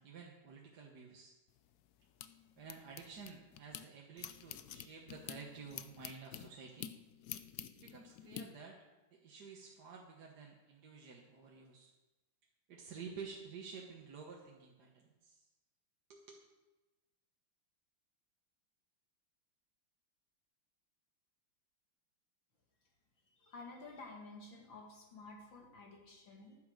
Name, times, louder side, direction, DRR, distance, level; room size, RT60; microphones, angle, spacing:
voice 1, 0.0-1.3 2.6-6.9 7.7-8.8 9.1-11.9 12.7-15.5 16.1-16.4, right 5 dB, 55° right, -1 dB, 1.6 m, -51 dB
sound 1, 1.5-3.8 4.2-8.4, left 11 dB, 80° left, 0.8 m, -48 dB
voice 2, 23.4-26.6, left 3 dB, 60° left, 0 dB, 2.7 m, -52 dB
11.0 x 9.7 x 6.4 m, 1.1 s
omnidirectional pair, 2.4 m